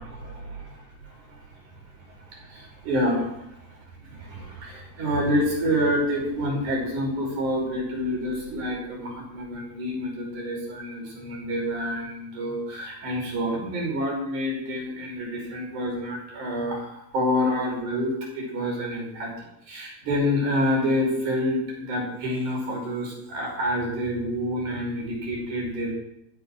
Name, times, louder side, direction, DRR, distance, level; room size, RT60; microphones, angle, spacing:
voice 1, 0.0-1.7 2.0-3.6 4.0-19.3 19.7-25.9, equal, 65° right, -1 dB, 7.0 m, -28 dB
15.0 x 13.0 x 6.4 m, 0.81 s
omnidirectional pair, 3.8 m